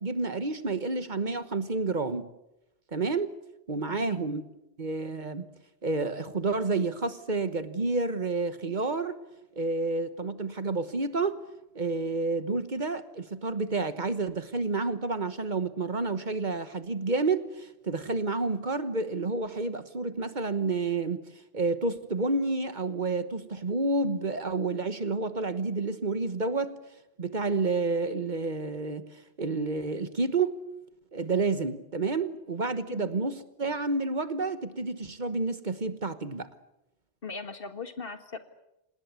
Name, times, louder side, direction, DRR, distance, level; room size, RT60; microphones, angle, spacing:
voice 1, 0.0-2.3 2.9-3.3 3.7-4.4 4.8-5.5 5.8-9.2 9.6-11.4 11.7-21.2 21.5-26.8 27.2-29.0 29.4-30.5 31.1-36.5, right 3 dB, 45° right, 12 dB, 1.3 m, -29 dB
voice 2, 3.9-4.2 32.9-33.2 37.2-38.4, left 4 dB, 60° left, 9 dB, 1.9 m, -39 dB
27.0 x 19.5 x 8.3 m, 0.90 s
omnidirectional pair, 1.1 m